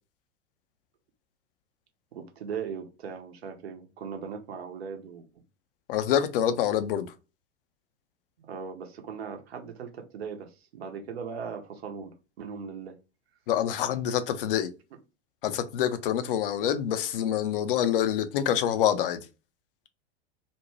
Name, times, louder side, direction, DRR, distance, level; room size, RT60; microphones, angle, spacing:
voice 1, 2.1-5.3 8.4-13.0, right 6 dB, 60° right, 0.8 m, -39 dB
voice 2, 5.9-7.1 13.5-14.7 15.4-19.2, left 10 dB, 50° left, 0.5 m, -26 dB
2.6 x 2.1 x 3.0 m
figure-of-eight pair, 90°, 35 cm